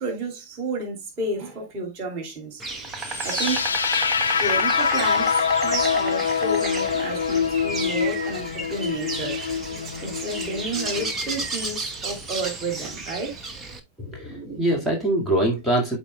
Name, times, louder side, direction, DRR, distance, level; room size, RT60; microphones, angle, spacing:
voice 1, 0.0-2.6 3.2-3.7 4.4-5.3 5.6-9.4 10.0-13.4, right 2 dB, 40° right, 2.6 m, -31 dB
Insect, 2.6-13.8, right 3 dB, 20° right, 1.0 m, -32 dB
sound 1, 3.1-11.1, left 6 dB, 70° left, 0.3 m, -25 dB
voice 2, 14.0-16.0, right 1 dB, ahead, 1.9 m, -23 dB
12.5 x 4.2 x 2.2 m
figure-of-eight pair, 90°, 0 cm